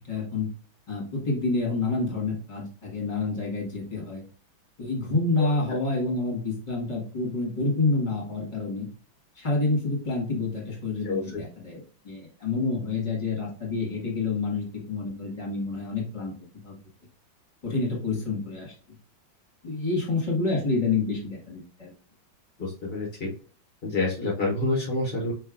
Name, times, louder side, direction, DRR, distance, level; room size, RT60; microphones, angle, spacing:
voice 1, 0.1-0.5 0.9-4.2 4.8-8.9 9.4-16.3 16.6-16.7 17.6-18.7 19.6-21.9, left 3 dB, 25° left, -2 dB, 1.6 m, -28 dB
voice 2, 11.0-11.4 22.6-23.3 23.8-25.3, left 2 dB, 45° left, -3 dB, 0.7 m, -28 dB
5.4 x 3.3 x 2.5 m, 0.41 s
omnidirectional pair, 2.2 m